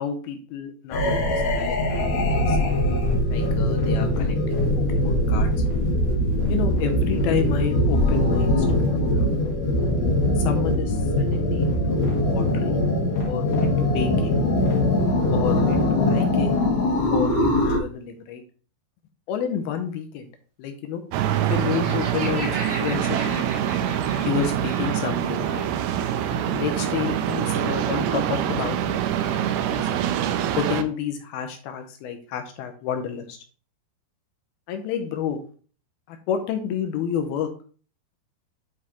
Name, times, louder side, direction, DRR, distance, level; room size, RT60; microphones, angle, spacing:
voice 1, 0.0-1.8 2.1-2.6 3.3-5.5 6.5-9.4 10.4-12.0 12.3-12.8 13.2-14.5 15.3-16.6 17.1-18.4 19.3-20.3 20.6-21.0 21.5-22.5 22.8-23.4 24.2-25.7 26.3-29.0 29.3-29.9 30.6-33.4 34.7-35.4 36.1-37.5, left 8 dB, 75° left, 5 dB, 2.5 m, -30 dB
sound 1, 0.9-17.8, left 1 dB, 60° left, 1.8 m, -22 dB
sound 2, 21.1-30.8, right 10 dB, 80° right, 2.3 m, -25 dB
Laughter, 21.5-25.2, right 3 dB, 55° right, 1.4 m, -36 dB
9.5 x 4.7 x 2.9 m, 0.41 s
omnidirectional pair, 4.8 m